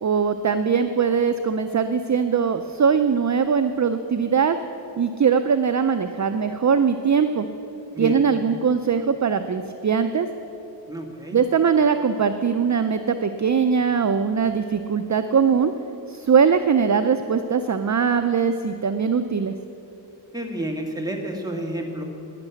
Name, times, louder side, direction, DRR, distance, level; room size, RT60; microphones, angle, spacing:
voice 1, 0.0-4.6 5.0-7.5 8.0-10.3 11.3-15.7 16.1-19.6, right 6 dB, 40° right, 8 dB, 0.5 m, -21 dB
voice 2, 10.9-11.4 20.3-22.0, right 1 dB, 10° right, 1 dB, 2.0 m, -30 dB
12.0 x 9.8 x 9.9 m, 2.9 s
wide cardioid pair, 95°, 43 cm